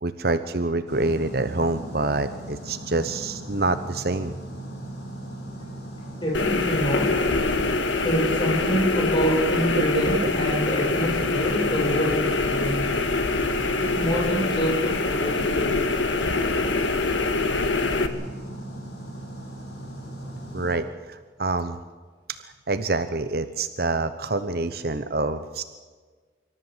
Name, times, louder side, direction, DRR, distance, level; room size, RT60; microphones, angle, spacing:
voice 1, 0.0-4.3 9.9-10.6 20.5-21.8 22.3-22.4 22.7-25.6, right 2 dB, 55° right, 10 dB, 0.9 m, -26 dB
sound 1, 0.9-20.8, right 1 dB, 60° left, 7.0 m, -38 dB
voice 2, 6.0-7.3 8.0-12.8 13.8-15.8, equal, 25° left, -2 dB, 7.4 m, -26 dB
sound 2, 6.3-18.1, left 3 dB, 90° left, 1.8 m, -24 dB
26.5 x 14.0 x 8.1 m, 1.5 s
head